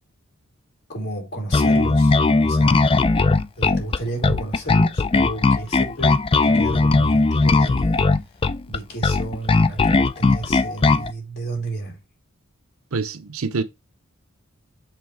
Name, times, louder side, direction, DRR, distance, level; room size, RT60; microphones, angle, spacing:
voice 1, 0.9-2.8 3.6-8.0 8.3-12.0, right 2 dB, 50° left, 2.9 m, -32 dB
Bass guitar, 1.5-11.1, left 3 dB, 25° left, 0.4 m, -18 dB
voice 2, 12.9-13.6, right 4 dB, 80° right, 0.8 m, -26 dB
7.5 x 3.6 x 4.6 m
head